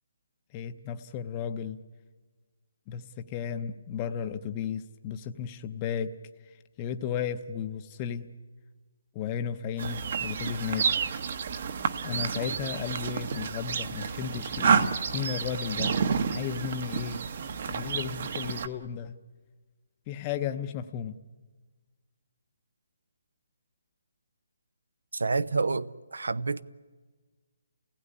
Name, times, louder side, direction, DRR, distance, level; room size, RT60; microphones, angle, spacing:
voice 1, 0.5-1.8 2.9-6.2 6.4-8.3 9.1-11.0 12.0-15.9 16.3-17.2 17.7-19.2 20.1-21.2, left 8 dB, 20° left, 0.7 m, -34 dB
sound 1, 9.8-18.7, right 6 dB, 45° right, 1.1 m, -30 dB
voice 2, 25.1-26.6, right 4 dB, 90° right, 0.8 m, -28 dB
29.0 x 16.5 x 9.7 m
hypercardioid pair, 165°, 0 cm